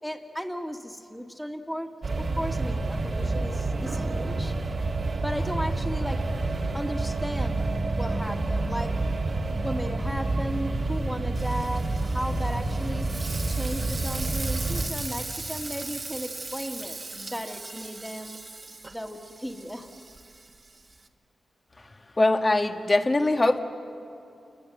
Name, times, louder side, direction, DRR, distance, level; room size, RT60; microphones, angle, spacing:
voice 1, 0.0-1.9 2.2-4.5 5.2-6.2 6.7-8.9 9.6-13.1 13.5-18.4 18.9-19.9, equal, ahead, 4 dB, 2.0 m, -35 dB
sound 1, 2.0-14.9, right 2 dB, 55° right, 1.9 m, -28 dB
Frying (food), 11.4-21.1, right 3 dB, 35° right, 1.7 m, -39 dB
voice 2, 22.2-23.6, left 2 dB, 30° left, 6 dB, 1.6 m, -22 dB
29.0 x 20.5 x 7.8 m, 2.7 s
cardioid pair, 75°, 0 cm